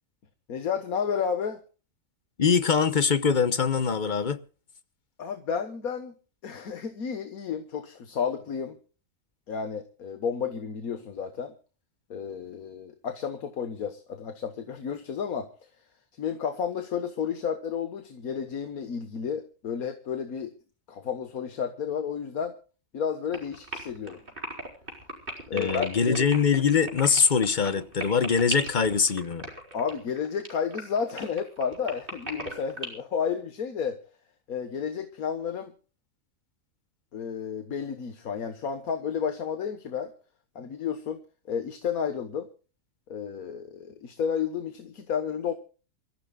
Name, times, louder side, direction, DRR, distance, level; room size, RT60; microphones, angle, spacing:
voice 1, 0.5-1.6 5.2-6.2 6.4-8.8 9.5-11.5 12.1-15.5 16.2-20.5 20.9-22.6 22.9-24.2 25.5-26.3 29.7-34.0 34.5-35.7 37.1-40.1 40.6-41.2 41.5-42.5 43.1-45.6, left 7 dB, 85° left, 1.7 m, -31 dB
voice 2, 2.4-4.4 25.5-29.5, left 6 dB, 40° left, 0.9 m, -23 dB
sound 1, 23.3-32.9, right 2 dB, 35° right, 4.6 m, -36 dB
28.0 x 14.5 x 2.3 m
omnidirectional pair, 1.5 m